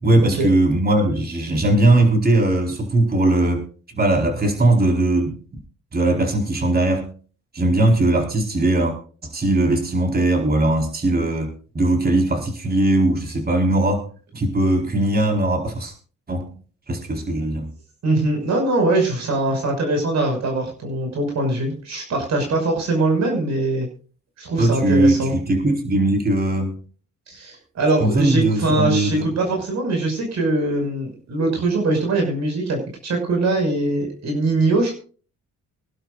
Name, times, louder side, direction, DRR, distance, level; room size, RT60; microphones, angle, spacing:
voice 1, 0.0-5.4 5.9-7.1 7.5-8.9 9.2-14.0 14.3-15.9 16.3-16.5 16.9-17.7 24.6-26.7 28.0-29.3, right 1 dB, 30° right, 2 dB, 4.5 m, -19 dB
voice 2, 18.0-23.9 24.4-25.3 27.3-35.0, right 2 dB, 60° right, 2 dB, 5.8 m, -22 dB
24.5 x 11.5 x 2.5 m, 0.40 s
cardioid pair, 90°, 30 cm